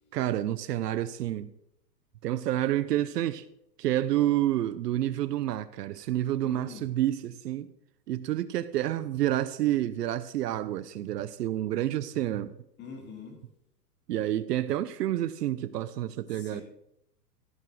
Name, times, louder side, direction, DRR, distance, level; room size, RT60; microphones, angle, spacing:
voice 1, 0.1-1.5 2.2-3.5 3.8-7.7 8.1-12.5 14.1-16.6, right 13 dB, 70° right, 0.8 m, -29 dB
voice 2, 6.4-6.9 12.8-13.4 16.3-16.6, left 5 dB, 20° left, 2.7 m, -44 dB
14.0 x 7.0 x 6.1 m
hypercardioid pair, 145°, 50 cm